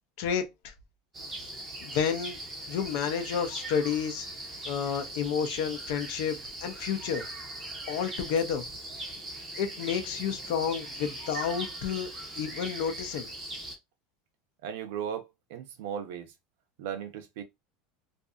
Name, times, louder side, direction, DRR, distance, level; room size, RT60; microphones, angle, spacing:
voice 1, 0.2-0.7 1.4-1.5 1.8-2.4 2.7-4.3 4.6-7.3 7.9-8.6 9.6-12.1 12.4-13.3, left 7 dB, 55° left, 0.6 m, -30 dB
sound 1, 1.1-13.8, right 1 dB, 15° right, 0.6 m, -40 dB
voice 2, 14.6-16.3 16.8-17.4, right 9 dB, 70° right, 0.6 m, -37 dB
2.6 x 2.5 x 2.3 m
supercardioid pair, 175°, 0 cm